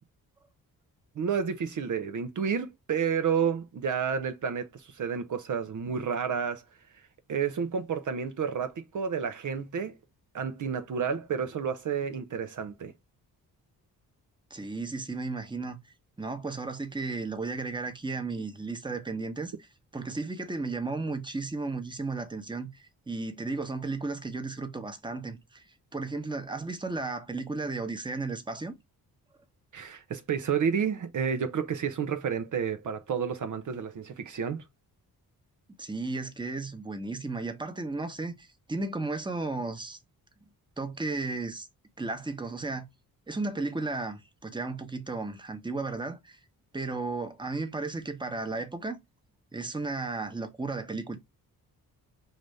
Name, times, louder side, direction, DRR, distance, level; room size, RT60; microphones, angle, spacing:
voice 1, 1.2-6.6 7.3-10.0 10.3-12.9 29.7-34.6, right 7 dB, 55° right, 0.7 m, -30 dB
voice 2, 14.5-15.8 16.2-19.7 19.9-25.6 25.9-28.7 35.8-40.0 40.8-41.7 42.0-42.8 43.3-46.4 46.7-49.0 49.5-51.2, right 3 dB, 10° right, 1.0 m, -34 dB
4.9 x 2.7 x 3.2 m
cardioid pair, 75°, 37 cm